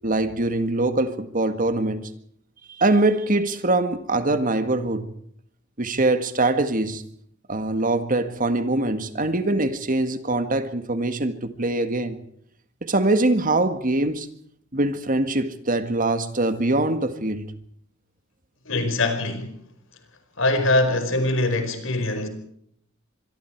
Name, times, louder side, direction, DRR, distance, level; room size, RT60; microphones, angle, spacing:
voice 1, 0.0-2.1 2.8-5.1 5.8-7.0 7.5-12.2 12.8-14.3 14.7-17.5, right 2 dB, 40° right, 1.7 m, -23 dB
voice 2, 18.6-19.5 20.4-22.3, left 2 dB, 70° left, 5.1 m, -22 dB
25.0 x 23.5 x 4.6 m
head